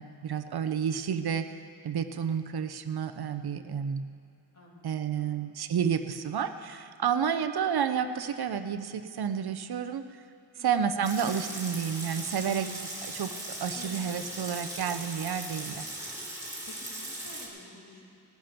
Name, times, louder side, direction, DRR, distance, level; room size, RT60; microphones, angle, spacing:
voice 1, 0.0-4.0 4.8-10.0 10.6-15.9, right 7 dB, 70° right, 10 dB, 0.7 m, -30 dB
voice 2, 4.5-5.3 10.6-10.9 13.7-13.9 14.2-14.3 16.6-18.0, left 2 dB, 40° left, -3 dB, 3.0 m, -51 dB
Water tap faucet / Sink (filling or washing) / Liquid, 11.0-17.5, right 1 dB, 10° right, 2.7 m, -39 dB
18.5 x 10.5 x 5.9 m, 2.5 s
wide cardioid pair, 160°, 40 cm